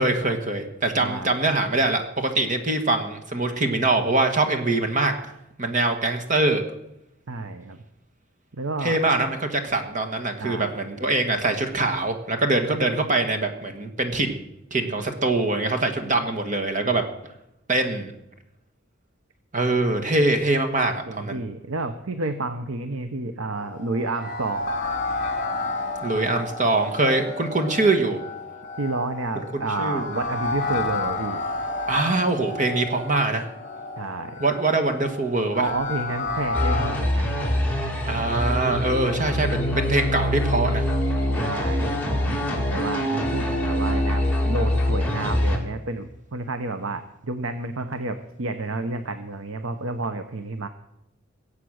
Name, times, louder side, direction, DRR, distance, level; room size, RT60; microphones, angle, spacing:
voice 1, 0.0-5.1 5.6-6.6 8.8-14.4 14.7-17.0 17.7-18.1 19.5-21.4 26.0-28.2 29.8-30.1 31.9-33.4 34.4-35.6 38.1-40.8, right 2 dB, 40° right, 5 dB, 1.6 m, -23 dB
voice 2, 1.0-1.3 7.3-7.8 8.5-9.0 10.4-10.8 16.1-16.2 21.1-24.7 28.8-31.4 34.0-34.4 35.6-37.3 38.2-38.3 41.4-42.1 42.7-50.7, right 2 dB, 80° right, 9 dB, 1.0 m, -30 dB
sound 1, 23.6-36.9, left 3 dB, 40° left, 3.2 m, -31 dB
sound 2, 36.5-45.6, left 1 dB, 10° left, 2.7 m, -24 dB
22.5 x 8.4 x 6.5 m, 0.84 s
head